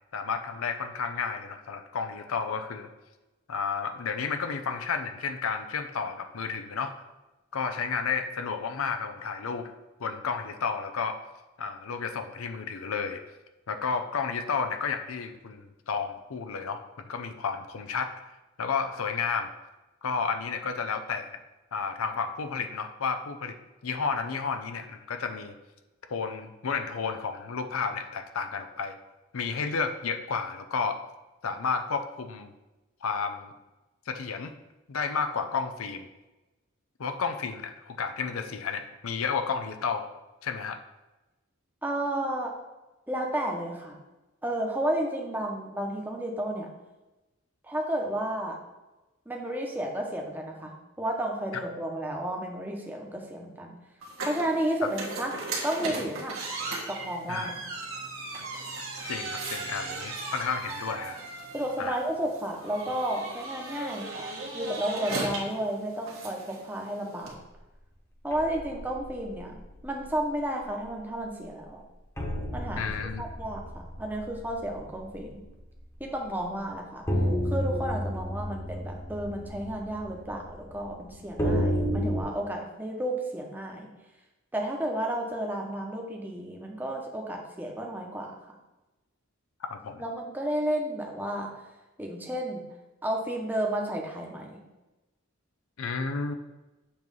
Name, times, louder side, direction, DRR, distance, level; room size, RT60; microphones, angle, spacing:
voice 1, 0.1-2.9 3.5-6.9 7.5-9.7 10.0-11.2 11.6-13.2 13.7-16.8 17.1-18.1 18.6-19.5 20.0-21.4 21.7-23.5 23.8-25.5 26.1-29.0 29.3-31.0 31.4-32.5 33.0-33.5 34.1-34.5 34.9-36.1 37.0-40.1 40.4-40.8 57.3-57.5 59.1-61.2 61.8-62.0 72.8-73.2 89.7-90.0 95.8-96.3, left 5 dB, 90° left, 8 dB, 0.6 m, -31 dB
voice 2, 41.8-42.5 43.1-44.0 44.4-46.7 47.6-48.6 49.3-53.8 54.2-55.3 55.6-56.4 56.9-57.6 61.5-67.3 68.2-71.8 72.5-75.4 76.0-77.1 77.5-83.9 84.5-88.5 90.0-91.7 92.0-92.6 93.0-94.6, right 1 dB, 10° right, 0 dB, 0.9 m, -32 dB
sound 1, 54.0-67.3, right 3 dB, 75° right, 1.5 m, -37 dB
sound 2, 68.3-70.2 70.6-70.9 71.2-71.3 72.2-76.0 76.4-76.5 77.1-82.2, equal, 15° left, 1.0 m, -32 dB
7.2 x 3.1 x 5.4 m, 1.1 s
head